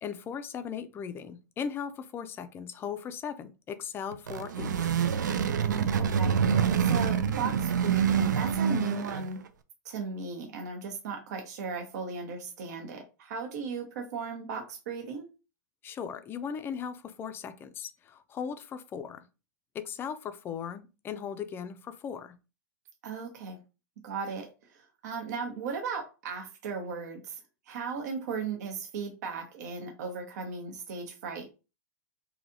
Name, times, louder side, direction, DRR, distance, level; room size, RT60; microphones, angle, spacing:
voice 1, 0.0-4.9 15.8-19.3 19.7-22.4, left 7 dB, 25° left, 0.4 m, -38 dB
sound 1, 4.1-9.4, right 7 dB, 90° right, 0.4 m, -26 dB
voice 2, 5.6-6.3 6.8-9.4 9.8-15.2 23.0-23.6 24.0-27.4 27.7-31.5, right 5 dB, 65° right, 0.9 m, -36 dB
3.2 x 2.7 x 2.6 m
hypercardioid pair, 120°, 10 cm